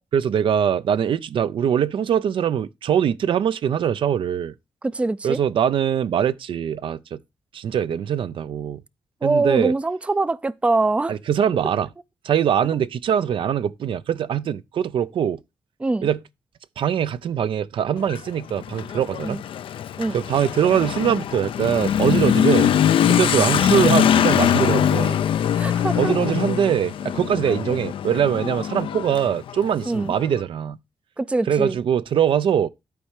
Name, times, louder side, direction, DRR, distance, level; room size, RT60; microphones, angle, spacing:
voice 1, 0.1-4.5 5.2-7.2 7.5-8.8 9.2-9.7 11.1-11.9 12.2-15.4 16.0-16.2 16.8-19.4 20.1-22.7 23.1-25.2 26.0-30.8 31.5-32.7, right 9 dB, 70° right, 0.5 m, -22 dB
voice 2, 4.8-5.4 9.2-11.2 15.8-16.1 19.2-19.4 20.0-20.2 23.4-23.5 25.6-26.1 29.9-30.1 31.2-31.8, right 2 dB, 15° right, 0.4 m, -23 dB
Motorcycle / Accelerating revving vroom, 18.0-30.3, left 9 dB, 80° left, 0.4 m, -22 dB
11.5 x 4.4 x 4.8 m
cardioid pair, 100°, 9 cm